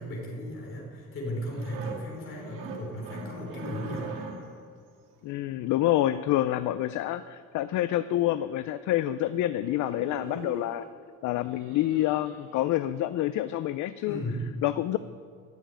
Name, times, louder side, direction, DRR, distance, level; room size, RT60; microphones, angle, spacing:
voice 1, 0.0-4.1 14.1-14.5, equal, 40° left, -1 dB, 3.8 m, -35 dB
sound 1, 1.4-4.6 5.6-6.8 7.9-8.0 8.3-8.4 8.7-8.9 9.2-9.4 9.6-10.9 11.4-13.0 13.4-13.6, right 4 dB, 75° right, 2.0 m, -43 dB
voice 2, 5.2-10.8 11.2-14.2 14.6-15.0, left 14 dB, 65° left, 13 dB, 0.4 m, -27 dB
13.5 x 7.2 x 8.9 m, 2.1 s
cardioid pair, 180°, 33 cm